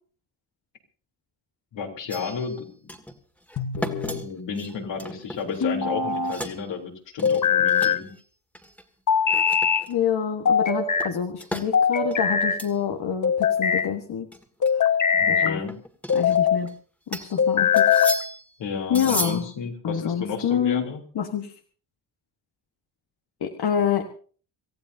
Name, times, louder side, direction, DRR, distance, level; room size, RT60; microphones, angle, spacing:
voice 1, 1.7-2.7 4.2-8.1 15.1-15.7 18.6-21.0, left 5 dB, 80° left, 1 dB, 3.6 m, -32 dB
sound 1, 2.1-2.6 2.9-3.2 3.5-5.9 6.1-6.6 7.2-8.2 8.5-8.8 9.3-10.1 11.0-11.7 12.1-12.8 13.1-13.2 13.6-13.7 14.3-14.7 15.7-16.7 17.1-17.4 17.8-18.5 18.9-19.6, equal, 5° left, 2.1 m, -35 dB
sound 2, 3.6-4.2 5.6-6.4 7.2-8.0 9.1-9.9 10.4-11.1 11.7-12.6 13.2-13.9 14.6-15.6 16.1-16.6 17.4-18.2, left 7 dB, 45° left, 1.4 m, -21 dB
voice 2, 9.9-14.3 14.7-14.9 15.3-15.6 16.1-16.7 17.1-17.9 18.9-19.4 19.8-20.8 21.1-21.5 23.4-24.1, left 8 dB, 60° left, 4 dB, 1.5 m, -27 dB
27.5 x 15.0 x 2.8 m, 0.41 s
cardioid pair, 100°, 42 cm